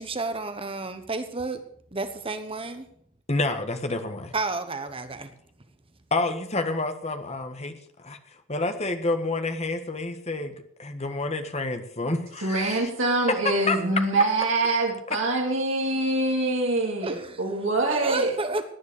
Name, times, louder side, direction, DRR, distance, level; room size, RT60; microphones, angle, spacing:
voice 1, 0.0-1.6 1.9-2.8 4.3-5.3 17.0-17.4 17.9-18.6, right 3 dB, 25° right, 9 dB, 1.1 m, -31 dB
voice 2, 3.3-4.3 6.1-8.2 8.5-12.9 13.3-14.1 15.1-15.2, left 2 dB, 30° left, 7 dB, 1.6 m, -29 dB
voice 3, 12.4-18.3, right 2 dB, 60° right, -1 dB, 3.4 m, -24 dB
18.0 x 9.6 x 6.7 m, 0.65 s
head